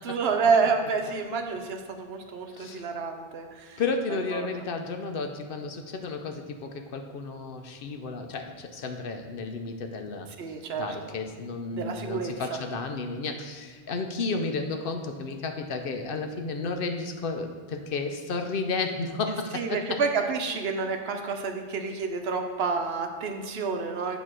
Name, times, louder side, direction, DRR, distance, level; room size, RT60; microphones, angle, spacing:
voice 1, 0.0-3.8 4.1-4.5 10.4-10.9 11.7-12.3 19.5-24.2, right 5 dB, 70° right, 5 dB, 0.9 m, -29 dB
voice 2, 2.5-2.8 3.8-20.0, left 4 dB, 60° left, 5 dB, 0.7 m, -32 dB
8.8 x 3.0 x 6.0 m, 1.5 s
omnidirectional pair, 1.1 m